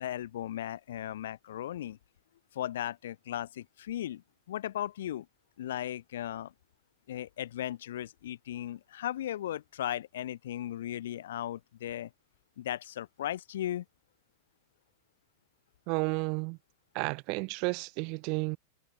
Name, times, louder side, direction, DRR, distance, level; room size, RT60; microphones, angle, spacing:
voice 1, 0.0-2.0 2.5-5.3 5.6-6.5 7.1-12.1 12.6-13.8, left 12 dB, 60° left, 2.2 m, -36 dB
voice 2, 15.9-16.6 16.9-18.6, right 33 dB, 45° right, 1.7 m, -32 dB
figure-of-eight pair, 90°, 0 cm